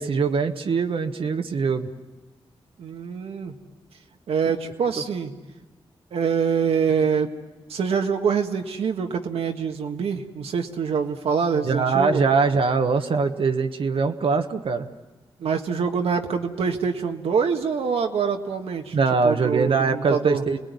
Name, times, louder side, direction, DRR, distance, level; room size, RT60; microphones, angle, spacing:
voice 1, 0.0-1.9 11.6-14.9 18.9-20.6, right 4 dB, 65° right, 5 dB, 1.2 m, -22 dB
voice 2, 2.8-3.5 4.3-5.3 6.1-7.3 7.7-12.2 15.4-19.0 19.2-20.4, right 6 dB, 90° right, 4 dB, 1.6 m, -25 dB
28.0 x 19.5 x 9.6 m, 1.2 s
cardioid pair, 75°, 10 cm